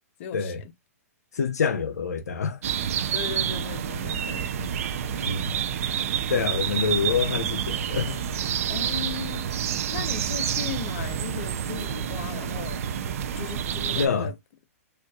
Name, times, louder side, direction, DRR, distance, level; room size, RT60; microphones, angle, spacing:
voice 1, 0.2-0.6 3.1-4.5 5.1-5.3 6.0-6.2 8.7-9.5 9.9-12.8 13.3-14.3, left 9 dB, 50° left, 0.8 m, -37 dB
voice 2, 1.3-2.6 4.6-4.7 5.2-5.5 6.3-8.2 13.9-14.3, left 5 dB, 85° left, 0.6 m, -26 dB
sound 1, 2.6-14.1, right 9 dB, 60° right, 0.5 m, -28 dB
4.4 x 2.4 x 2.4 m
hypercardioid pair, 125°, 9 cm